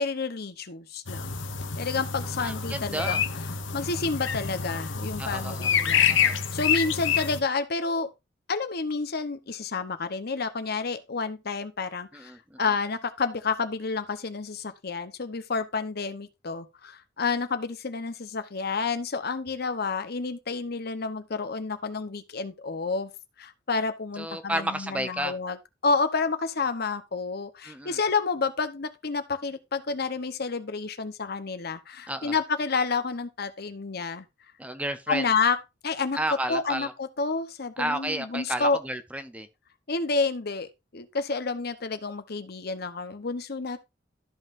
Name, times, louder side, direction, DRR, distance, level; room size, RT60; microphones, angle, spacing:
voice 1, 0.0-1.4 1.8-3.2 3.7-8.1 8.5-12.3 12.6-23.1 23.4-25.6 25.8-34.3 35.1-35.6 35.8-36.2 36.5-38.8 39.9-43.8, left 4 dB, 60° left, 0.9 m, -29 dB
sound 1, 1.1-7.4, left 7 dB, 85° left, 0.9 m, -27 dB
voice 2, 2.4-3.2 5.2-5.7 6.1-6.4 12.1-12.6 24.2-25.3 27.6-28.0 32.1-32.4 34.6-35.3 36.2-36.9 37.8-39.5, right 1 dB, 5° right, 0.6 m, -32 dB
13.0 x 5.5 x 2.6 m
head